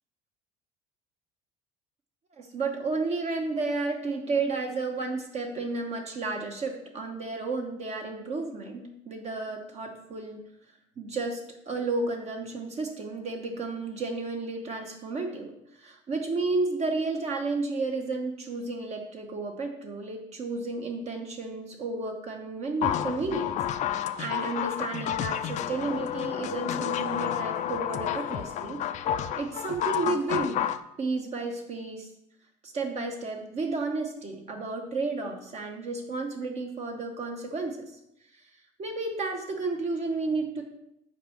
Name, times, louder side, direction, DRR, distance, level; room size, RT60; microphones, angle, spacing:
voice 1, 2.3-10.4 11.0-28.8 29.4-30.6 31.0-32.1 32.6-37.8 38.8-40.6, right 3 dB, 40° right, 2 dB, 1.0 m, -32 dB
sound 1, 22.8-30.8, left 10 dB, 45° left, 0.4 m, -30 dB
5.7 x 4.3 x 4.9 m, 0.80 s
supercardioid pair, 105°, 17 cm